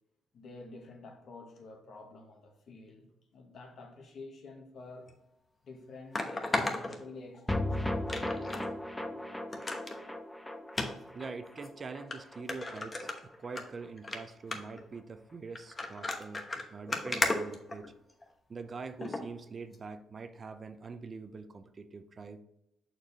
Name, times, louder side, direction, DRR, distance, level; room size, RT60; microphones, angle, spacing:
voice 1, 0.3-5.1 5.6-8.5, left 3 dB, 60° left, 1.4 m, -50 dB
sound 1, 5.1-5.2 6.1-7.6 8.1-8.7 9.0-9.1 9.5-10.0 10.7-10.9 11.6-11.7 12.1-12.2 12.5-13.6 14.0-14.2 14.5-14.8 15.5-18.2 19.0-19.2 19.7-19.8, left 2 dB, 30° left, 1.0 m, -34 dB
sound 2, 7.5-13.9 14.2-14.3 14.6-14.7, left 1 dB, 5° left, 0.6 m, -37 dB
voice 2, 11.1-16.4 16.7-17.9 18.5-22.4, right 4 dB, 40° right, 0.5 m, -44 dB
6.5 x 4.6 x 4.0 m
cardioid pair, 90°, 0 cm